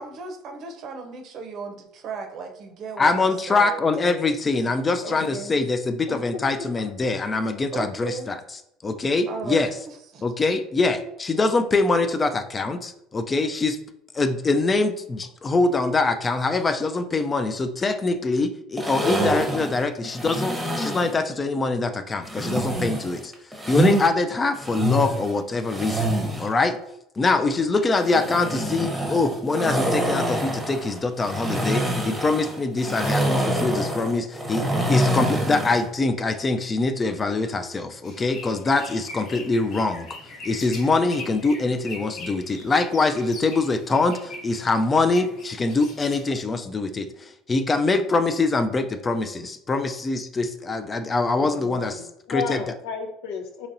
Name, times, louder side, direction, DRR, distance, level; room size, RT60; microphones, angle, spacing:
voice 1, 0.0-3.8 4.2-4.3 5.0-5.6 7.7-8.3 9.3-10.2, right 5 dB, 55° right, 5 dB, 0.7 m, -36 dB
voice 2, 3.0-8.4 8.8-9.7 10.2-13.8 14.1-23.3 23.7-26.1 26.4-26.8 27.2-40.2 40.4-52.0 52.3-52.6, left 3 dB, 25° left, 9 dB, 0.4 m, -24 dB
voice 3, 6.1-6.4 51.4-53.7, left 6 dB, 80° left, 4 dB, 0.6 m, -33 dB
sound 1, 18.8-21.2 22.3-24.1 24.5-26.5 27.9-35.9, right 1 dB, 15° right, 0.8 m, -26 dB
sound 2, 38.0-46.3, left 2 dB, 55° left, 0.9 m, -41 dB
4.0 x 2.9 x 2.6 m, 0.79 s
supercardioid pair, 90°, 0 cm